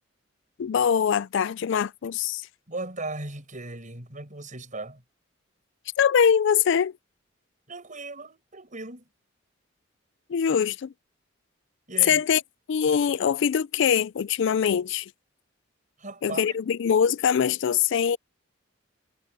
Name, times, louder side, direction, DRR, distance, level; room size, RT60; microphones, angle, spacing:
voice 1, 0.6-2.5 6.0-6.9 10.3-10.9 12.0-12.4 12.7-15.1 16.2-18.2, left 7 dB, 65° left, 0.4 m, -23 dB
voice 2, 2.7-5.0 7.7-9.1 11.9-12.2 16.0-16.5, right 2 dB, 40° right, 5.8 m, -37 dB
head